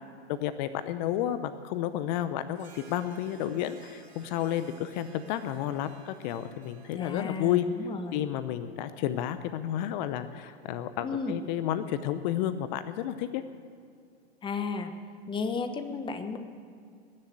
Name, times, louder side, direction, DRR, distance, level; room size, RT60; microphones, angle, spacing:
voice 1, 0.3-7.6 8.1-13.4, left 11 dB, 45° left, 12 dB, 0.8 m, -31 dB
Harp, 2.5-8.2, right 4 dB, 85° right, 2.2 m, -56 dB
voice 2, 7.0-8.3 11.0-11.4 14.4-14.9 15.3-16.4, left 4 dB, 15° left, 8 dB, 1.1 m, -33 dB
19.5 x 7.6 x 9.3 m, 2.2 s
hypercardioid pair, 120°, 32 cm